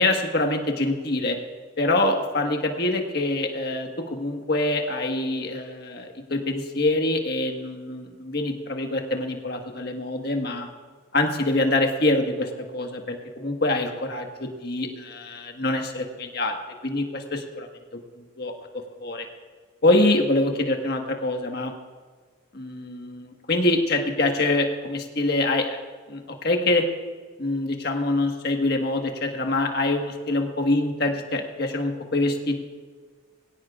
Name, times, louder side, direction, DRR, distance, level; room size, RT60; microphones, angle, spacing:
voice 1, 0.0-1.4 1.8-10.7 11.1-16.6 16.8-18.0 18.4-18.5 19.0-19.3 19.8-21.7 22.5-25.8 26.1-26.8 27.4-32.6, left 2 dB, 50° left, 3 dB, 1.5 m, -25 dB
22.0 x 17.0 x 2.4 m, 1.5 s
head